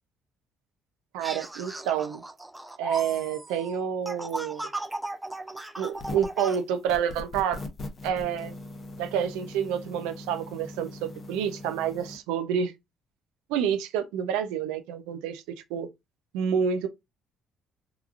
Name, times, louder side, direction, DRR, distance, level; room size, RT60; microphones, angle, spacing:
voice 1, 1.1-2.2 2.8-4.7 5.8-7.6 8.0-8.5 9.0-12.7 13.5-15.4 15.7-15.9 16.3-16.9, right 8 dB, 90° right, 0.4 m, -28 dB
sound 1, 1.2-6.6, right 2 dB, 10° right, 0.4 m, -37 dB
sound 2, 5.9-6.4 6.9-12.2, left 2 dB, 40° left, 0.7 m, -41 dB
2.9 x 2.4 x 2.3 m
supercardioid pair, 75°, 0 cm